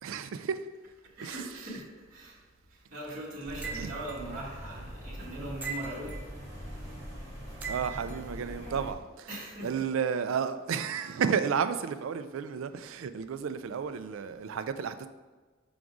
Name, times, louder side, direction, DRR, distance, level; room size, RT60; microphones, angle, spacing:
voice 1, 0.0-0.7 1.2-1.7 3.7-4.0 7.7-9.3 9.6-15.1, right 7 dB, 80° right, 11 dB, 0.4 m, -32 dB
voice 2, 1.2-2.4 2.7-6.2 9.3-9.8, right 1 dB, 40° right, -8 dB, 1.6 m, -40 dB
sound 1, 3.5-8.9, equal, 15° left, 1.7 m, -42 dB
sound 2, 3.6-4.2 5.6-6.3 7.6-8.2, right 6 dB, 10° right, 0.5 m, -39 dB
6.0 x 3.9 x 4.7 m, 1.3 s
head